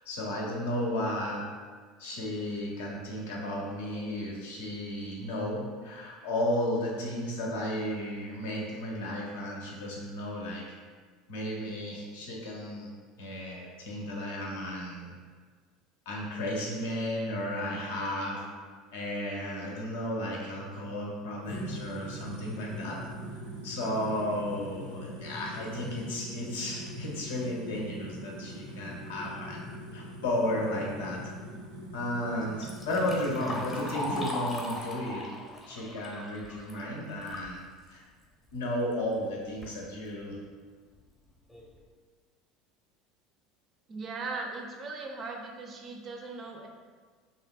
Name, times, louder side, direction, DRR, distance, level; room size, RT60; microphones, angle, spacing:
voice 1, 0.1-1.4 2.0-10.6 11.3-12.9 13.2-15.1 16.1-18.4 18.9-23.0 23.6-29.6 29.9-31.2 31.9-35.3 35.7-37.6 37.9-38.0 38.5-40.4, left 1 dB, 65° left, -2 dB, 0.5 m, -33 dB
sound 1, 21.4-34.2, equal, 85° right, 0.6 m, -42 dB
Liquid, 32.4-37.5 37.9-38.0 38.9-39.0 39.4-39.8 40.4-40.5 41.0-41.1 41.5-41.8, left 1 dB, 15° left, 0.6 m, -38 dB
voice 2, 43.9-46.7, right 3 dB, 35° right, 1 dB, 0.4 m, -38 dB
2.7 x 2.0 x 2.3 m, 1.5 s
figure-of-eight pair, 70°, 0 cm